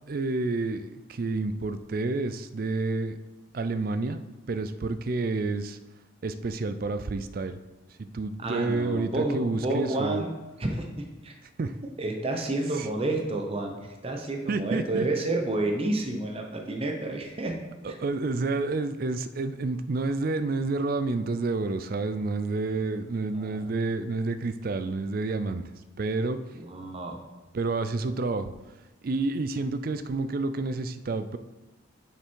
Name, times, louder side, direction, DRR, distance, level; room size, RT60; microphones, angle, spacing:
voice 1, 0.1-3.2 3.5-5.8 6.2-7.6 8.0-10.3 11.6-11.8 12.8-12.9 14.5-15.1 17.8-25.7 26.0-26.4 27.5-28.5 29.0-31.4, right 3 dB, 45° right, 11 dB, 0.4 m, -29 dB
voice 2, 8.4-10.3 10.6-11.3 12.0-17.5 17.9-18.0 23.3-23.7 26.6-27.1, right 2 dB, 30° right, 2 dB, 0.8 m, -30 dB
6.9 x 5.8 x 4.6 m, 1.1 s
head